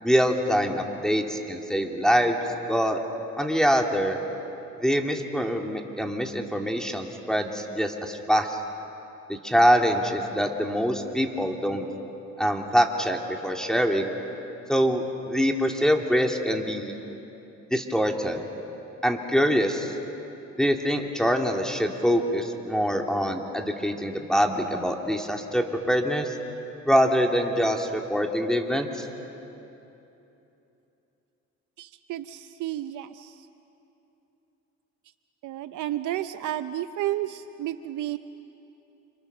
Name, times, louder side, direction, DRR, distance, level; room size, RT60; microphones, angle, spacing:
voice 1, 0.0-2.4 2.7-3.0 3.4-4.2 4.8-8.6 9.3-11.8 12.4-14.1 14.7-16.9 17.7-18.5 19.0-19.9 20.6-26.4 26.8-29.1, equal, ahead, 2 dB, 2.3 m, -24 dB
voice 2, 31.8-33.3 35.4-38.2, right 13 dB, 80° right, 11 dB, 0.7 m, -32 dB
30.0 x 27.5 x 6.7 m, 3.0 s
cardioid pair, 90°, 30 cm